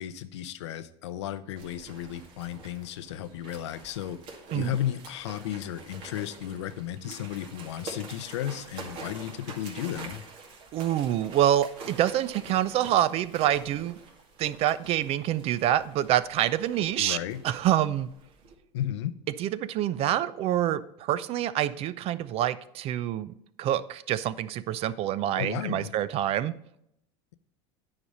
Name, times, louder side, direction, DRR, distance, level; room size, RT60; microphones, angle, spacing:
voice 1, 0.0-4.2 4.5-10.2 17.0-17.4 18.7-19.1 25.4-25.9, left 11 dB, 90° left, 13 dB, 0.6 m, -34 dB
sound 1, 1.6-18.6, right 3 dB, 60° right, 2.1 m, -46 dB
voice 2, 10.7-14.0 14.4-17.2 17.4-18.1 19.4-26.5, right 12 dB, 45° right, 16 dB, 0.5 m, -26 dB
9.7 x 5.0 x 5.4 m, 0.75 s
supercardioid pair, 120°, 14 cm